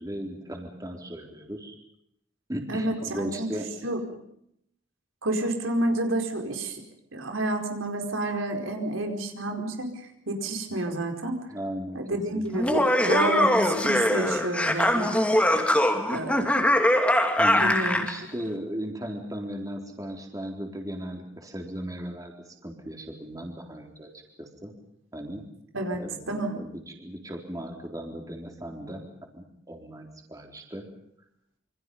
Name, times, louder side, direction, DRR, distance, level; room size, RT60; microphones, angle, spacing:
voice 1, 0.0-1.8 2.5-3.7 11.5-12.0 12.3-12.8 17.4-22.3 22.6-24.7 25.1-25.4 26.0-29.0 29.3-30.8, equal, 20° right, 1 dB, 3.9 m, -37 dB
voice 2, 2.7-3.5 3.8-4.0 5.2-6.8 7.1-11.4 11.9-15.2 16.1-16.7 17.5-18.0 25.7-26.5, right 1 dB, 90° right, 4 dB, 4.8 m, -29 dB
Laughter, 12.5-18.1, left 1 dB, 5° left, 2.5 m, -22 dB
28.0 x 26.0 x 5.6 m, 0.74 s
head